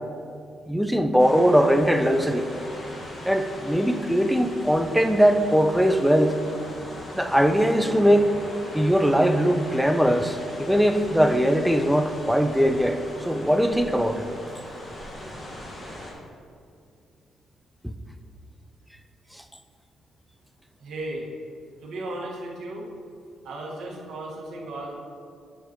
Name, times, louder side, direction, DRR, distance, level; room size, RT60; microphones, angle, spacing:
voice 1, 0.7-2.5 3.2-6.4 7.1-8.3 8.7-14.3 17.8-17.9, equal, ahead, 7 dB, 0.5 m, -21 dB
sound 1, 1.2-16.1, left 1 dB, 30° left, 1.6 m, -39 dB
voice 2, 20.8-21.2 21.8-22.9 23.4-24.9, right 2 dB, 80° right, -3 dB, 1.6 m, -35 dB
9.0 x 6.8 x 3.0 m, 2.4 s
cardioid pair, 90°, 0 cm